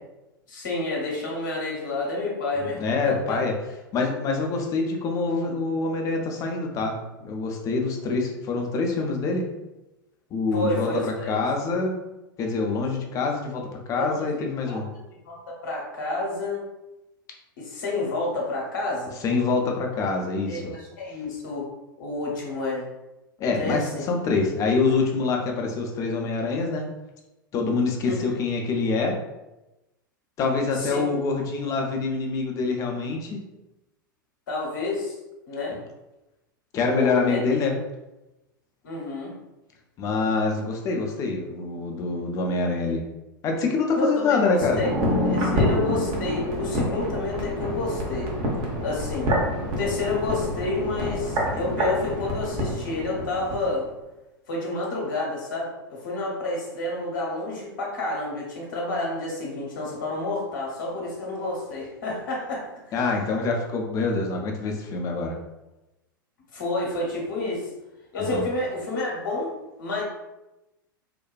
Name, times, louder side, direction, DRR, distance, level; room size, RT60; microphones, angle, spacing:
voice 1, 0.5-3.4 10.5-11.4 14.0-14.8 15.2-15.4 15.6-16.6 17.6-19.2 20.5-21.6 22.0-22.9 23.4-24.0 28.0-28.4 30.7-31.0 34.5-35.2 35.5-35.8 36.9-37.4 38.8-39.3 44.0-44.9 45.2-48.3 48.8-49.3 49.8-53.9 54.5-63.0 66.5-67.7 68.1-70.0, left 2 dB, 60° left, -2 dB, 0.8 m, -29 dB
voice 2, 2.8-3.5 3.9-7.0 7.2-9.4 10.3-11.9 12.4-14.8 19.2-20.7 23.4-26.9 27.5-29.2 30.4-33.4 36.7-37.7 40.0-43.0 43.4-44.8 62.9-65.3 68.2-68.4, left 4 dB, 30° left, 2 dB, 0.5 m, -25 dB
sound 1, 44.5-53.6 53.9-54.0, equal, 40° right, 0.7 m, -27 dB
2.5 x 2.2 x 2.2 m, 0.98 s
figure-of-eight pair, 90°, 12 cm